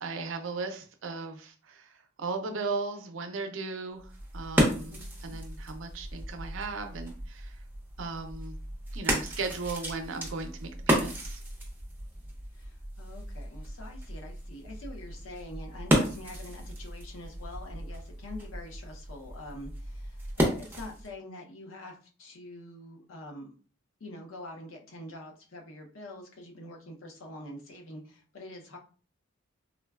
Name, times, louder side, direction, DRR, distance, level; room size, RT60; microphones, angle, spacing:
voice 1, 0.0-7.6 8.0-8.5 8.9-11.4, right 4 dB, 70° right, 6 dB, 0.5 m, -37 dB
sound 1, 4.0-21.1, equal, 10° right, 0.7 m, -33 dB
voice 2, 4.9-5.4 12.5-23.5 24.0-28.8, left 1 dB, 85° left, 1 dB, 0.7 m, -45 dB
3.7 x 2.2 x 2.3 m, 0.40 s
head